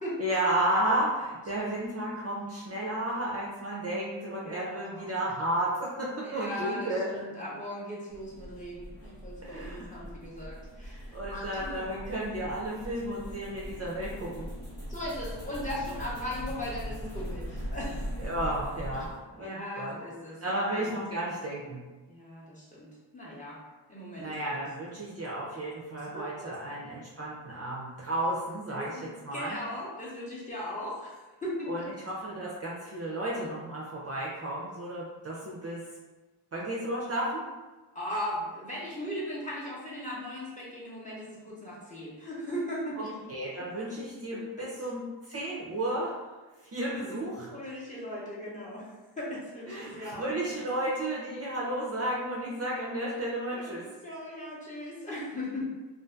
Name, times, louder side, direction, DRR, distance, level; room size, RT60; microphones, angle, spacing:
voice 1, 0.2-7.2 9.4-10.1 11.1-14.5 18.2-20.0 20.4-21.8 24.2-29.6 31.7-35.8 36.5-37.4 43.0-46.1 46.7-47.5 49.7-53.9, right 1 dB, 35° right, -5 dB, 0.5 m, -33 dB
voice 2, 4.4-5.2 6.2-12.0 14.9-18.1 19.4-20.9 22.1-23.6 23.9-24.6 26.1-26.3 28.7-31.9 37.9-43.1 44.3-44.4 47.0-47.1 47.5-48.9 49.2-50.3 53.5-55.6, left 1 dB, 15° left, -7 dB, 0.7 m, -38 dB
sound 1, 8.1-19.2, equal, 80° left, 1.3 m, -40 dB
2.6 x 2.4 x 2.3 m, 1.2 s
wide cardioid pair, 90°, 46 cm